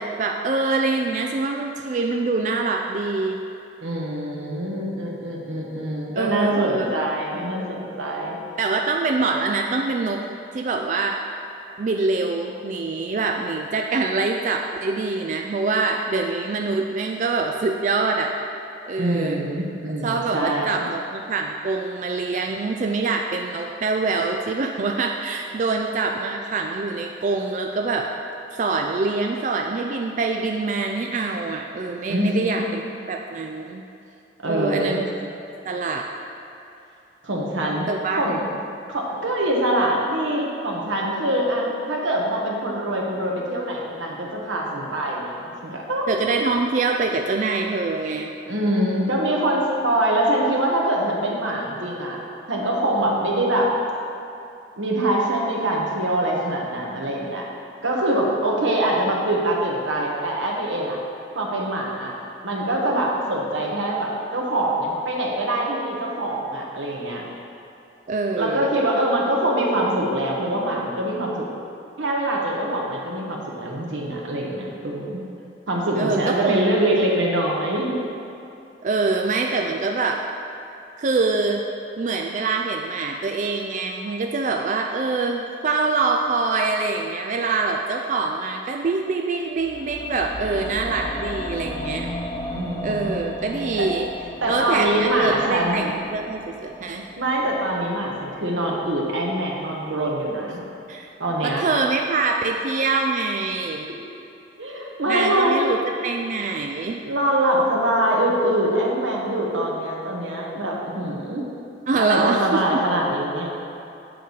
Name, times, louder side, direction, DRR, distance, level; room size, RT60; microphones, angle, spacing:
voice 1, 0.0-3.4 6.1-6.9 8.6-10.2 10.5-11.2 11.8-18.3 18.9-19.4 20.0-28.1 28.5-32.8 33.1-33.8 34.4-35.0 35.6-36.1 37.9-38.4 46.1-48.3 68.1-68.7 76.0-77.0 78.8-80.2 81.0-81.6 82.0-92.1 92.8-94.1 94.5-97.0 100.9-101.1 101.4-103.9 105.1-107.0 111.9-112.8, right 3 dB, 40° right, 2 dB, 0.3 m, -24 dB
voice 2, 3.8-8.4 19.0-20.8 32.1-32.6 34.4-35.0 37.2-37.8 38.2-38.5 38.9-46.1 48.5-52.2 52.5-53.7 54.8-57.5 57.8-61.0 61.3-62.2 62.4-67.2 68.3-71.5 72.0-75.2 75.7-77.9 92.5-93.2 93.8-93.9 94.4-95.8 97.1-100.6 101.2-101.7 104.6-105.6 107.0-111.4 112.0-113.5, right 1 dB, 90° right, -2 dB, 1.3 m, -24 dB
sound 1, 89.6-99.7 100.0-100.1, left 1 dB, 20° left, 0.6 m, -35 dB
7.7 x 6.6 x 4.0 m, 2.7 s
head